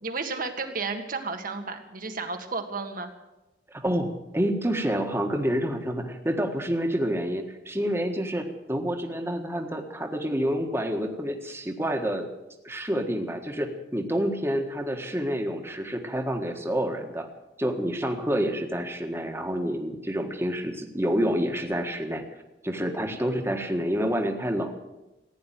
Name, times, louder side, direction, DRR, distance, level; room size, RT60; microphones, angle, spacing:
voice 1, 0.0-3.1, right 4 dB, 50° right, 6 dB, 1.8 m, -32 dB
voice 2, 3.7-12.3 12.6-17.3 17.6-22.2 22.6-24.8, equal, 15° right, 4 dB, 1.6 m, -28 dB
15.5 x 9.9 x 9.3 m, 1.0 s
head